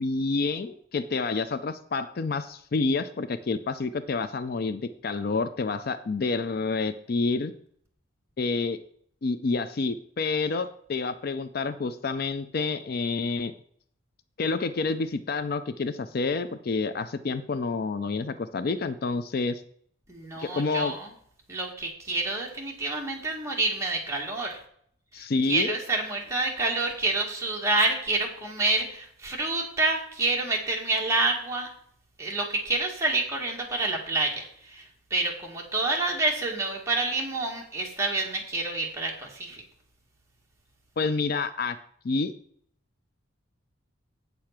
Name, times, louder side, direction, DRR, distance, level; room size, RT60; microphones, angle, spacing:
voice 1, 0.0-7.5 8.4-8.8 9.2-13.5 14.4-19.6 20.4-20.9 25.1-25.8 41.0-41.8 42.0-42.3, left 4 dB, 45° left, 12 dB, 0.4 m, -28 dB
voice 2, 20.1-21.1 21.5-24.6 25.5-31.7 32.2-39.6, right 2 dB, 15° right, -1 dB, 1.8 m, -28 dB
8.3 x 6.6 x 5.9 m, 0.65 s
head